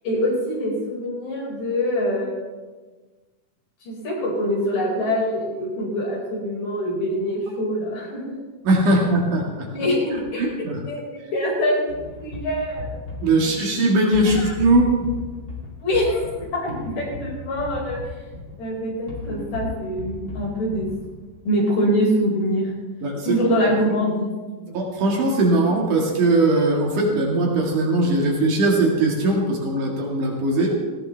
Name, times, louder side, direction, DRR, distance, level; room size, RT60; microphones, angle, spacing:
voice 1, 0.0-2.4 3.8-8.2 8.9-9.0 9.7-10.4 10.9-11.8 12.2-12.9 14.4-14.5 15.8-18.0 18.6-20.9 21.4-22.7 23.2-24.8, equal, 80° left, -4 dB, 6.8 m, -24 dB
voice 2, 8.6-9.7 10.1-10.8 13.2-15.1 23.0-23.4 24.7-30.7, right 2 dB, 70° right, -1 dB, 3.5 m, -20 dB
sound 1, 11.9-21.4, left 4 dB, 35° left, 3.0 m, -36 dB
18.0 x 16.5 x 3.4 m, 1.3 s
omnidirectional pair, 3.8 m